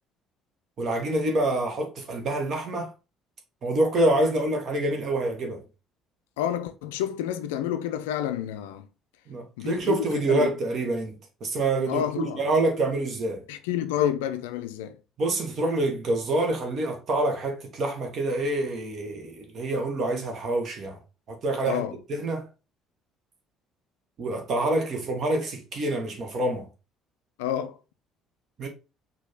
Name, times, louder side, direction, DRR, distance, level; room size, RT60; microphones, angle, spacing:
voice 1, 0.8-2.9 3.6-5.6 9.3-11.1 11.4-13.4 15.2-21.0 21.3-21.8 22.1-22.5 24.2-26.7 28.6-28.7, right 2 dB, 45° right, 1.3 m, -26 dB
voice 2, 6.4-8.9 9.6-10.5 11.9-12.4 13.5-15.0 21.6-22.0 27.4-27.8, left 10 dB, 70° left, 0.4 m, -29 dB
5.1 x 2.8 x 3.6 m
figure-of-eight pair, 50°, 0 cm